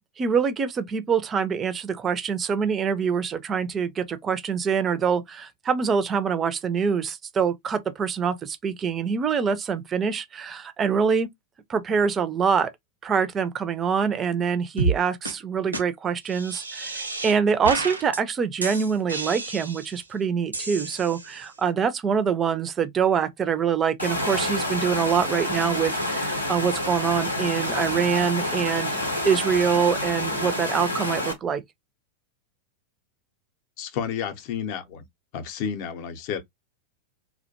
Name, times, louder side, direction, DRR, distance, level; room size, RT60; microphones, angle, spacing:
voice 1, 0.2-11.3 11.7-12.7 13.0-28.9 29.2-31.6, right 6 dB, 25° right, 0.4 m, -25 dB
sound 1, 14.8-15.0 15.3-15.4 15.7-15.8 16.3-17.4 17.6-18.2 18.6-20.0 20.5-21.5, right 3 dB, 85° right, 0.5 m, -30 dB
Water, 24.0-31.3, left 1 dB, 85° left, 0.7 m, -28 dB
voice 2, 33.8-35.0 35.3-36.4, left 8 dB, 45° left, 0.6 m, -31 dB
2.4 x 2.1 x 2.6 m
figure-of-eight pair, 90°, 0 cm